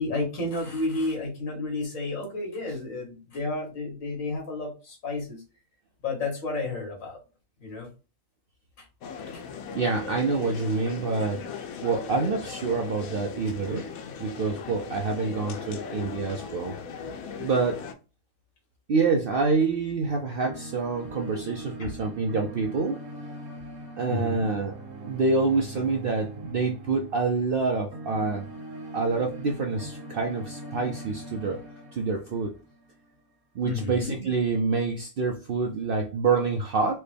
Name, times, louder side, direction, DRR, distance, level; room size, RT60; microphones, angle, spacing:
voice 1, 0.0-5.4 6.0-7.2 7.6-7.9 9.3-9.4 21.8-21.9 24.1-24.5 33.6-34.3, left 2 dB, 75° left, 0 dB, 1.8 m, -31 dB
sound 1, 9.0-17.9, left 6 dB, 90° left, 1.0 m, -38 dB
voice 2, 9.7-11.4 11.8-13.9 14.2-16.7 17.4-17.8 18.9-23.0 24.0-24.7 25.0-28.5 28.9-31.6 31.9-32.5 33.6-37.0, right 4 dB, 65° right, 3 dB, 0.5 m, -27 dB
sound 2, 20.0-33.2, right 1 dB, 50° right, 0.9 m, -42 dB
4.4 x 2.1 x 3.3 m, 0.31 s
omnidirectional pair, 1.4 m